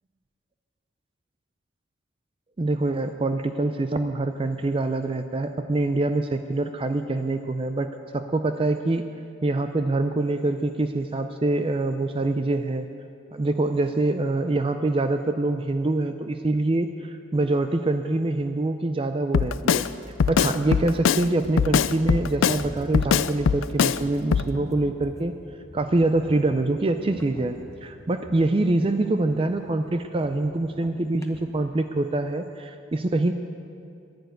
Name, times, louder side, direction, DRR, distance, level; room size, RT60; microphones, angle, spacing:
voice 1, 2.6-9.1 9.4-12.9 13.3-19.9 20.3-25.4 25.7-33.3, right 2 dB, 30° right, 8 dB, 0.4 m, -25 dB
Drum kit, 19.3-19.9 20.2-21.2 21.6-22.6 22.9-24.0 24.3-24.5, left 6 dB, 85° left, 0.4 m, -21 dB
sound 1, 21.7-31.9, equal, 15° left, 0.9 m, -44 dB
11.0 x 10.5 x 9.2 m, 2.5 s
head